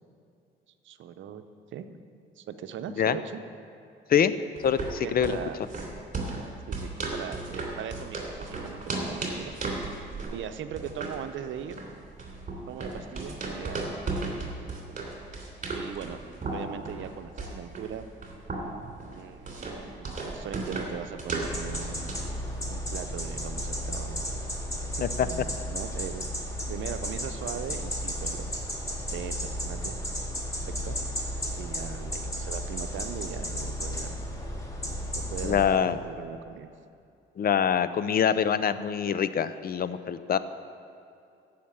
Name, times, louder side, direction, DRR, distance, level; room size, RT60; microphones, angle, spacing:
voice 1, 0.8-1.4 1.7-1.9 2.4-3.4 5.0-5.6 6.7-9.5 10.3-11.8 12.7-13.9 14.4-15.1 15.7-16.2 16.5-18.1 19.1-22.1 22.7-24.5 25.2-26.3 26.7-28.5 29.1-30.0 30.7-31.0 31.6-34.2 35.1-36.7, right 8 dB, 75° right, 9 dB, 0.8 m, -39 dB
voice 2, 4.6-5.4 25.0-25.3 35.4-36.0 37.4-40.4, left 8 dB, 50° left, 14 dB, 0.6 m, -25 dB
sound 1, 4.6-22.4, right 3 dB, 40° right, 3.1 m, -36 dB
sound 2, 21.4-35.7, equal, 15° left, 2.0 m, -34 dB
14.0 x 5.8 x 8.6 m, 2.5 s
cardioid pair, 90°, 20 cm